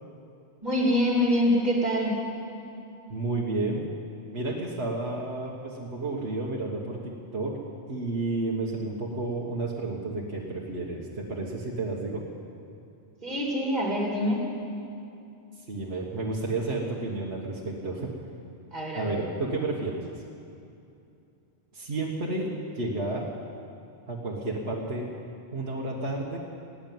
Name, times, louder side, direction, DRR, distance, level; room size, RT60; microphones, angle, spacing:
voice 1, 0.6-2.2 13.2-14.4 18.7-19.2, equal, 40° right, -2 dB, 3.4 m, -25 dB
voice 2, 3.1-3.8 4.3-7.6 7.9-12.2 15.7-18.1 18.9-20.1 21.7-22.5 22.7-23.2 24.1-25.1 25.5-26.4, right 2 dB, 70° right, -3 dB, 1.7 m, -31 dB
17.5 x 9.0 x 9.2 m, 2.6 s
omnidirectional pair, 1.1 m